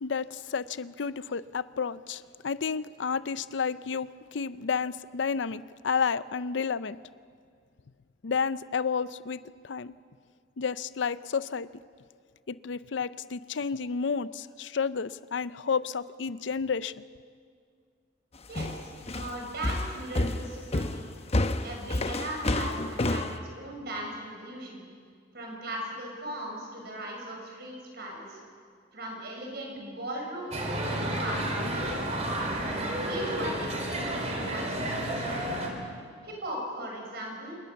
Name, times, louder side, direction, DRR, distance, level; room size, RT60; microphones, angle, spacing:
voice 1, 0.0-7.0 8.2-9.9 10.6-11.7 12.5-17.0, left 6 dB, 75° left, 16 dB, 0.6 m, -31 dB
voice 2, 18.5-21.1 21.6-24.8 25.3-28.4 28.9-30.6 31.0-32.0 33.0-35.5 36.2-37.6, right 1 dB, 60° right, 0 dB, 6.7 m, -38 dB
sound 1, 18.6-23.4, left 2 dB, 35° left, 0.9 m, -29 dB
sound 2, 30.5-35.7, right 1 dB, 35° right, 3.9 m, -31 dB
26.5 x 20.0 x 7.1 m, 2.1 s
head